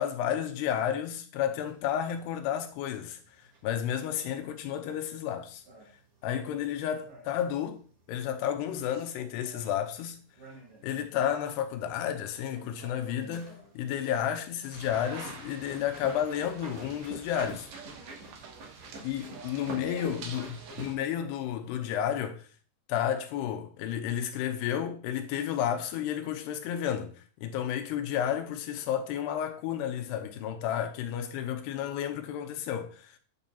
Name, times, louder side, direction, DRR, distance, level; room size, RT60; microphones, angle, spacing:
voice 1, 0.0-5.6 6.2-7.8 8.1-10.2 10.8-17.7 19.0-22.5 22.9-33.2, left 10 dB, 80° left, 2.8 m, -32 dB
sound 1, 1.5-21.1, right 1 dB, 40° right, 3.0 m, -50 dB
sound 2, 14.7-20.9, right 5 dB, 65° right, 2.3 m, -47 dB
9.5 x 7.2 x 2.8 m
omnidirectional pair, 5.0 m